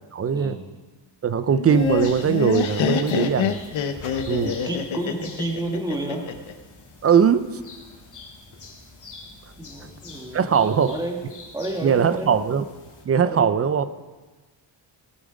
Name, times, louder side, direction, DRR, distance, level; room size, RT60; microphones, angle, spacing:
voice 1, 0.1-0.6 1.2-3.6 4.3-4.5 7.0-7.5 10.3-11.0 11.8-12.7 13.1-13.9, right 7 dB, 35° right, 13 dB, 0.4 m, -20 dB
Laughter, 1.5-6.5, left 7 dB, 90° left, 1.0 m, -26 dB
sound 1, 1.7-13.0, left 3 dB, 40° left, 3.0 m, -44 dB
voice 2, 4.4-6.2 9.6-11.2 11.5-12.3 13.2-13.5, right 1 dB, 10° right, 1 dB, 1.6 m, -30 dB
18.0 x 8.7 x 5.0 m, 1.3 s
wide cardioid pair, 175°, 46 cm